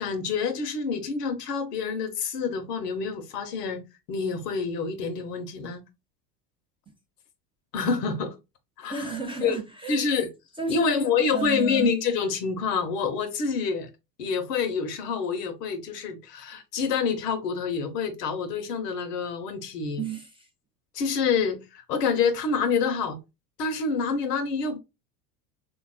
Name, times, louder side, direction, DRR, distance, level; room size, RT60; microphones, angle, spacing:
voice 1, 0.0-3.8 4.1-5.8 7.7-8.3 8.8-9.1 9.4-9.6 9.9-10.3 10.7-13.9 14.2-20.0 20.9-23.2 23.6-24.8, left 5 dB, 85° left, 0.8 m, -27 dB
voice 2, 8.9-10.2 10.6-11.9 20.0-20.5, right 3 dB, 10° right, 0.4 m, -32 dB
3.5 x 2.3 x 2.3 m
hypercardioid pair, 85°, 47 cm